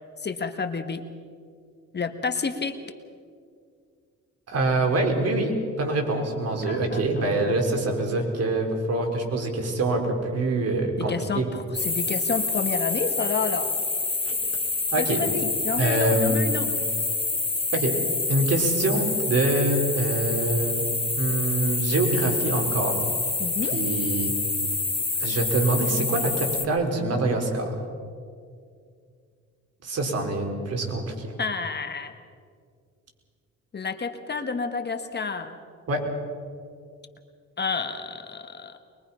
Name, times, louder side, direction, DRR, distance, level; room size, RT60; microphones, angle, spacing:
voice 1, 0.2-1.0 1.9-2.8 6.6-7.5 11.0-13.7 15.0-16.7 23.4-23.8 31.4-32.1 33.7-35.6 37.6-38.8, left 5 dB, 35° left, 7 dB, 1.5 m, -30 dB
voice 2, 4.5-11.5 14.2-14.3 14.9-15.2 15.8-16.6 17.7-18.0 18.3-20.8 21.2-23.0 23.7-24.3 25.2-27.8 29.8-31.3 35.9-36.1, right 2 dB, 55° right, 3 dB, 4.3 m, -25 dB
sound 1, 11.7-26.7, left 3 dB, 20° left, 1.4 m, -27 dB
23.5 x 22.0 x 5.7 m, 2.2 s
cardioid pair, 90°, 30 cm